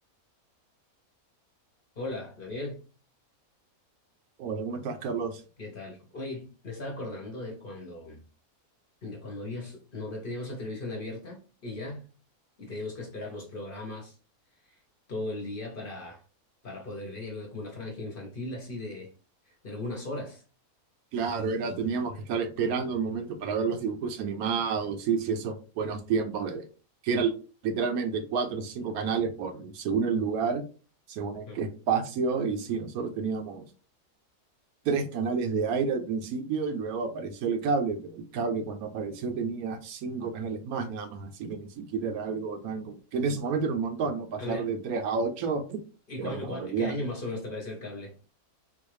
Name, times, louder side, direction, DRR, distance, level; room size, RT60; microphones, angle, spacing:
voice 1, 2.0-2.8 5.6-8.2 9.0-12.1 12.6-14.1 15.1-16.2 16.6-19.1 19.5-20.4 31.5-31.6 44.4-44.7 46.1-48.1, left 2 dB, 45° left, 0.9 m, -37 dB
voice 2, 4.4-5.4 21.1-26.7 27.0-27.3 27.6-30.6 31.1-33.6 34.8-45.8 46.2-46.9, right 5 dB, 80° right, 1.1 m, -30 dB
3.9 x 2.5 x 3.1 m
omnidirectional pair, 1.5 m